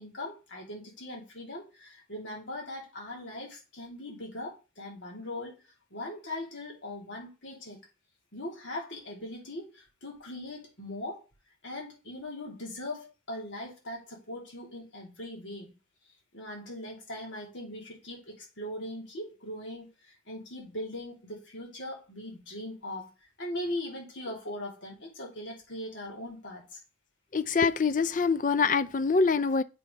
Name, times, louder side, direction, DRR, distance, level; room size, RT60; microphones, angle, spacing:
voice 1, 0.0-7.8 8.3-11.2 11.6-15.7 16.3-23.1 23.4-26.8, left 1 dB, 85° left, 3.1 m, -40 dB
voice 2, 27.3-29.6, left 4 dB, 45° left, 0.4 m, -25 dB
7.6 x 5.4 x 3.9 m
head